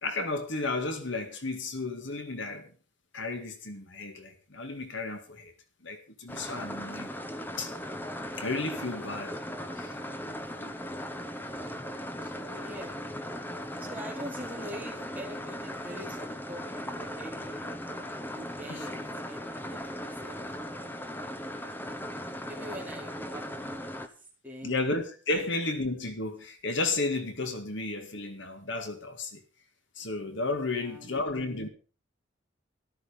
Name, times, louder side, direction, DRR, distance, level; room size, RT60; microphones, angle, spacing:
voice 1, 0.0-2.7 3.1-5.5 5.8-7.1 7.6-7.7 8.4-9.4 9.8-9.9 10.6-10.7 18.7-18.9 24.6-29.4 30.0-31.7, left 2 dB, 60° left, 2.0 m, -33 dB
sound 1, 6.3-24.1, equal, 10° left, 1.1 m, -38 dB
voice 2, 8.7-13.0 13.8-17.8 18.3-21.2 21.5-21.9 22.5-24.8 25.3-25.5 30.7-31.5, equal, 10° right, 4.6 m, -46 dB
13.5 x 13.0 x 5.1 m
head